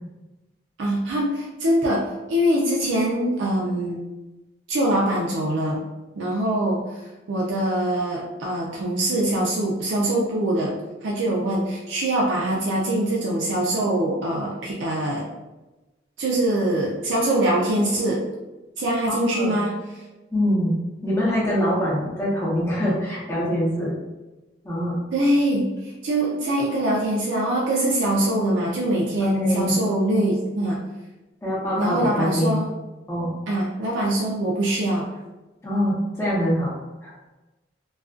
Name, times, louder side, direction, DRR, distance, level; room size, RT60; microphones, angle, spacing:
voice 1, 0.8-4.0 4.7-5.8 6.2-10.8 11.0-15.3 16.2-18.2 18.8-19.7 25.1-30.8 31.8-32.7 33.5-35.1, right 1 dB, 80° right, -4 dB, 0.4 m, -23 dB
voice 2, 20.3-20.7 21.0-23.9 24.6-25.0 29.2-29.7 31.4-32.6 33.1-33.3 35.6-36.7 37.0-37.1, equal, 15° left, -8 dB, 0.7 m, -24 dB
2.3 x 2.2 x 2.4 m, 1.1 s
head